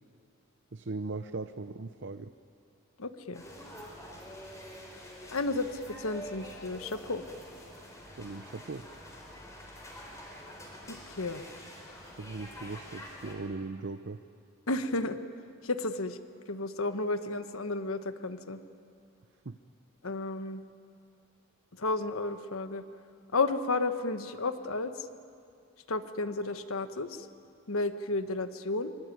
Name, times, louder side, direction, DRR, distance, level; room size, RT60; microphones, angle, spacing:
voice 1, 0.7-2.3 8.1-8.9 12.2-14.2 19.4-19.6, right 3 dB, 55° right, 10 dB, 0.7 m, -39 dB
voice 2, 3.0-3.4 5.3-7.2 10.9-11.4 14.7-15.2 15.6-16.2 16.5-18.6 20.0-20.6 21.8-22.8 23.3-24.9 25.9-27.3 27.7-28.9, left 3 dB, 80° left, 9 dB, 1.3 m, -32 dB
sound 1, 3.3-13.3, equal, 15° left, 4.5 m, -47 dB
24.5 x 23.0 x 9.3 m, 2.4 s
head